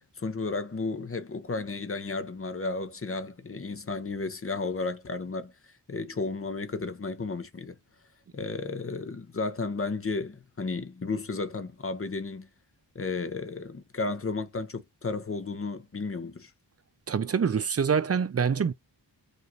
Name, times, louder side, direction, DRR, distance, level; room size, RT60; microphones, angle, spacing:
voice 1, 0.0-5.5 5.9-7.8 8.3-12.5 12.9-16.5, left 3 dB, 30° left, 0.8 m, -33 dB
voice 2, 17.1-18.7, right 6 dB, 35° right, 0.4 m, -25 dB
5.1 x 2.6 x 2.8 m
wide cardioid pair, 140°, 44 cm